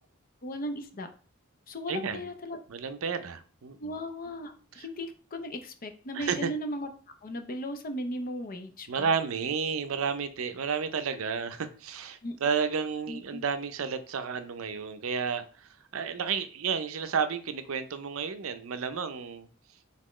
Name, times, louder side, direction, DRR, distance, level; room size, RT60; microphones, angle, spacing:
voice 1, 0.4-1.1 1.7-2.6 3.8-6.9 7.2-9.1 12.2-12.4 13.1-13.4, equal, 45° left, 7 dB, 0.6 m, -37 dB
voice 2, 1.9-2.3 2.7-4.0 4.7-4.9 6.1-6.5 8.9-19.5, right 6 dB, 75° right, 10 dB, 0.5 m, -32 dB
4.2 x 3.6 x 3.1 m, 0.38 s
head